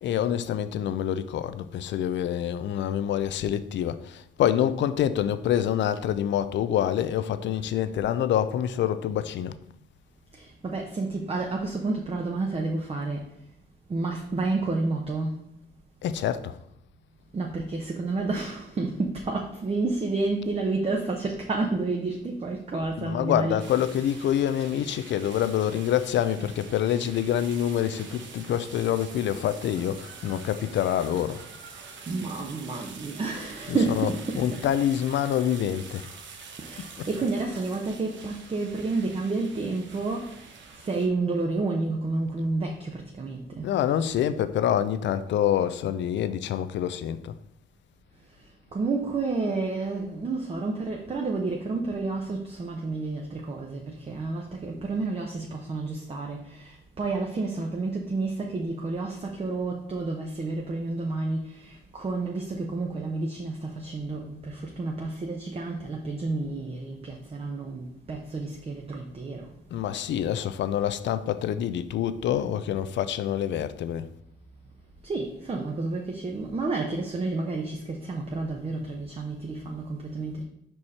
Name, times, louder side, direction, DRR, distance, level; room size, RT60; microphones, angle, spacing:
voice 1, 0.0-9.6 16.0-16.6 23.0-31.4 33.7-36.1 36.8-37.1 43.6-47.3 69.7-74.1, left 10 dB, 65° left, 0.5 m, -26 dB
voice 2, 10.3-13.3 13.9-15.4 17.3-23.6 32.1-34.6 36.6-43.7 48.7-69.5 75.0-80.4, right 3 dB, 30° right, 0.8 m, -30 dB
sound 1, 23.6-41.1, right 5 dB, 70° right, 0.9 m, -46 dB
4.9 x 4.5 x 4.2 m
cardioid pair, 90°, 20 cm